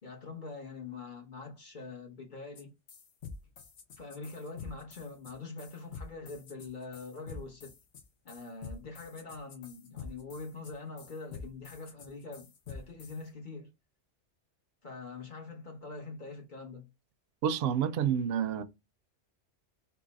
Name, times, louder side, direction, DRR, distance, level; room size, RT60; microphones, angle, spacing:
voice 1, 0.0-2.7 4.0-7.8 8.2-13.7 14.8-16.9, left 3 dB, 45° left, 1.1 m, -44 dB
sound 1, 2.5-2.6 2.9-13.2, left 5 dB, 70° left, 1.1 m, -47 dB
voice 2, 17.4-18.6, right 8 dB, 65° right, 0.7 m, -29 dB
3.8 x 2.7 x 4.0 m
omnidirectional pair, 1.2 m